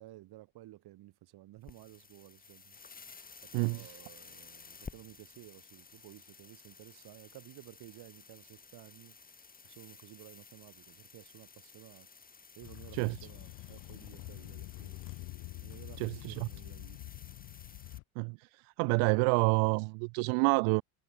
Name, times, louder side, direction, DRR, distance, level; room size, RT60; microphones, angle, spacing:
voice 1, 0.0-2.8 3.4-9.2 9.6-12.1 12.6-15.0 15.6-17.0, right 16 dB, 50° right, 3.0 m, -54 dB
sound 1, 1.6-18.0, left 5 dB, 15° left, 5.4 m, -54 dB
voice 2, 3.5-4.0 12.9-13.2 16.0-16.5 18.2-20.8, right 38 dB, 70° right, 1.0 m, -28 dB
sound 2, 12.6-18.0, left 22 dB, 60° left, 1.7 m, -46 dB
cardioid pair, 145°, 50 cm